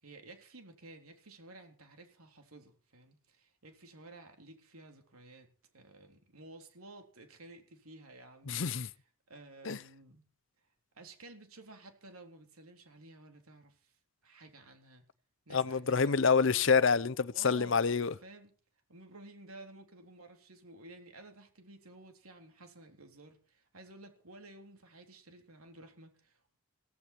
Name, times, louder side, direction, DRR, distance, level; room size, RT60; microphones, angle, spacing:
voice 1, 0.0-5.5 5.7-8.6 9.3-10.2 10.9-13.9 14.2-15.0 15.5-16.8 17.3-17.8 18.2-18.5 18.9-26.6, right 2 dB, 90° right, 3.7 m, -54 dB
voice 2, 8.5-8.9 9.7-9.8 15.5-18.1, left 5 dB, 60° left, 0.7 m, -27 dB
17.0 x 15.5 x 4.6 m
head